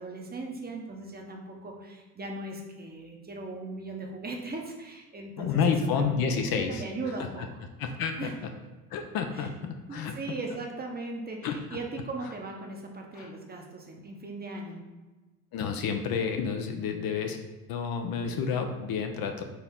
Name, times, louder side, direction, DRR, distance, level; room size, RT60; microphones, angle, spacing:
voice 1, 0.0-5.8 6.1-6.4 6.7-7.6 8.2-8.4 9.3-9.5 9.9-14.8, right 2 dB, 20° right, 1 dB, 0.8 m, -38 dB
voice 2, 5.4-6.8 7.8-8.3 8.9-10.1 11.4-11.5 13.2-13.3 15.5-17.4 17.7-19.4, left 6 dB, 55° left, 5 dB, 0.6 m, -29 dB
4.5 x 2.8 x 3.6 m, 1.2 s
supercardioid pair, 85°, 44 cm